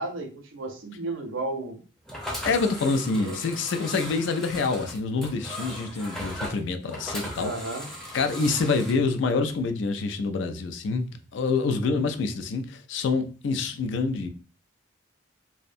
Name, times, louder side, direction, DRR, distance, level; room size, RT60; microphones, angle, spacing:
voice 1, 0.0-1.8 3.1-3.4 7.3-7.9, right 2 dB, 70° right, 0.6 m, -33 dB
sound 1, 2.1-8.9, equal, 5° left, 0.5 m, -37 dB
voice 2, 2.4-7.5 8.1-14.3, left 4 dB, 65° left, 0.3 m, -26 dB
2.5 x 2.1 x 2.5 m
head